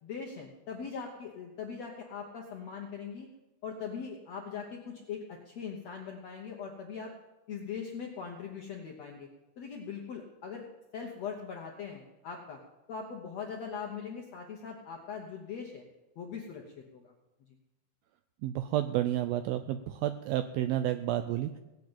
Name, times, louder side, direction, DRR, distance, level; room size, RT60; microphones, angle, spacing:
voice 1, 0.0-3.3 3.6-7.1 7.5-9.3 9.6-10.7 10.9-12.6 12.9-15.8 16.1-17.1, left 6 dB, 70° left, 0 dB, 1.6 m, -41 dB
voice 2, 18.4-21.6, right 12 dB, 85° right, 10 dB, 2.1 m, -31 dB
18.0 x 6.6 x 8.8 m, 1.0 s
omnidirectional pair, 4.7 m